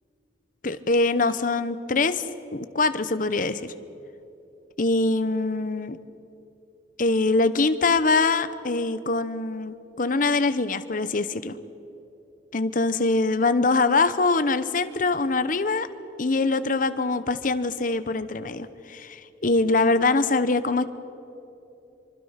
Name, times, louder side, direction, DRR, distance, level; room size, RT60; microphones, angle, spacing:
voice 1, 0.6-2.2 2.5-3.6 4.8-6.0 7.0-11.6 12.5-15.9 16.2-20.8, left 3 dB, 45° left, 12 dB, 0.9 m, -23 dB
25.0 x 24.5 x 5.8 m, 2.9 s
head